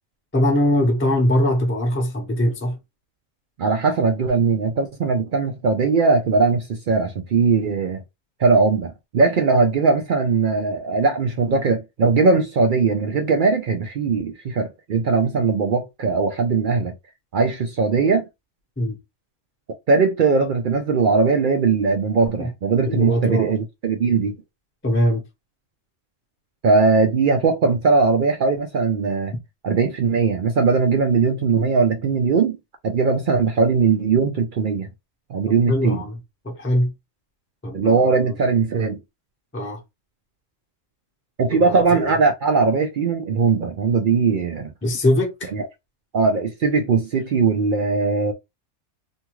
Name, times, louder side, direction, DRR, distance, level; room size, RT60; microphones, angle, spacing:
voice 1, 0.3-2.8 18.8-19.0 22.4-22.5 22.8-23.5 24.8-25.2 35.7-36.2 36.4-36.9 37.6-38.4 39.5-39.8 41.5-42.1 44.8-45.5, left 1 dB, 10° left, 0.6 m, -22 dB
voice 2, 3.6-8.0 8.4-16.9 17.3-18.3 19.9-24.4 26.6-29.3 29.6-32.6 32.8-34.9 35.3-36.0 37.7-39.0 41.4-44.7 45.5-45.7 46.1-48.3, right 4 dB, 65° right, 0.5 m, -19 dB
2.7 x 2.3 x 3.0 m
omnidirectional pair, 1.3 m